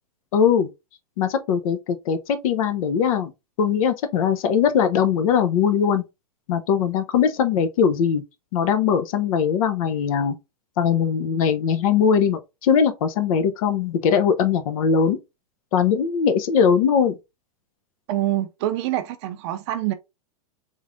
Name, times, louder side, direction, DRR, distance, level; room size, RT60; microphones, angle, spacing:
voice 1, 0.3-0.7 1.2-3.3 3.6-6.0 6.5-8.2 8.5-10.4 10.8-15.2 15.7-17.2, left 7 dB, 65° left, 0.8 m, -20 dB
voice 2, 18.1-19.9, right 13 dB, 50° right, 0.4 m, -25 dB
3.6 x 3.2 x 2.5 m
hypercardioid pair, 130°, 19 cm